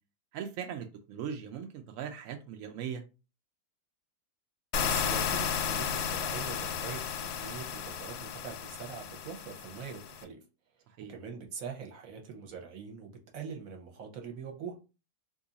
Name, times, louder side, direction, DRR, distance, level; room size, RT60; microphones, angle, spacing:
voice 1, 0.3-3.0 10.9-11.1, right 8 dB, 75° right, 0.7 m, -39 dB
sound 1, 4.7-10.2, left 7 dB, 70° left, 0.9 m, -33 dB
voice 2, 4.8-10.4 11.1-14.7, right 6 dB, 60° right, 1.1 m, -43 dB
2.7 x 2.6 x 3.9 m
omnidirectional pair, 1.9 m